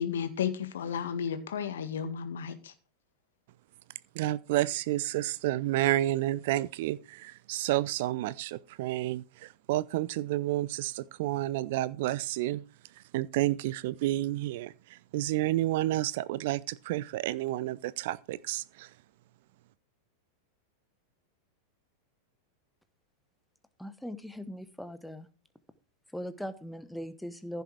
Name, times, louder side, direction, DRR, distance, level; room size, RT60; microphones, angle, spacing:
voice 1, 0.0-2.7, left 8 dB, 60° left, 1.8 m, -33 dB
voice 2, 4.2-12.6 13.1-18.9, right 15 dB, 50° right, 0.5 m, -30 dB
voice 3, 23.8-25.3 26.1-27.6, equal, ahead, 1.0 m, -40 dB
15.0 x 6.9 x 4.8 m
figure-of-eight pair, 90°, 0 cm